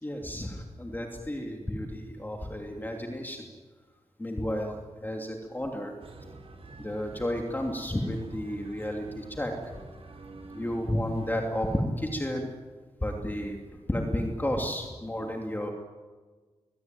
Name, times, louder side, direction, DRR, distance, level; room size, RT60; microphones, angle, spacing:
voice 1, 0.0-3.5 4.2-5.9 6.8-9.5 10.5-12.5 13.0-13.6 13.9-15.7, left 1 dB, 15° left, 2 dB, 2.8 m, -32 dB
sound 1, 6.0-11.8, right 3 dB, 55° right, 4.1 m, -47 dB
22.5 x 21.5 x 9.2 m, 1.4 s
wide cardioid pair, 90°, 12 cm